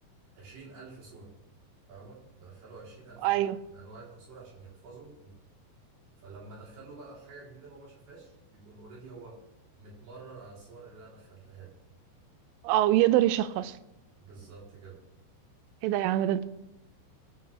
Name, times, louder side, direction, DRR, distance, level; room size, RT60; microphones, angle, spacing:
voice 1, 0.4-1.3 1.9-3.5 3.7-5.4 6.2-9.4 9.8-11.7 14.2-15.0, right 4 dB, 55° right, 5.5 m, -49 dB
voice 2, 3.2-3.6 12.6-13.8 15.8-16.4, right 14 dB, 90° right, 3.1 m, -24 dB
21.5 x 7.2 x 3.4 m
omnidirectional pair, 5.5 m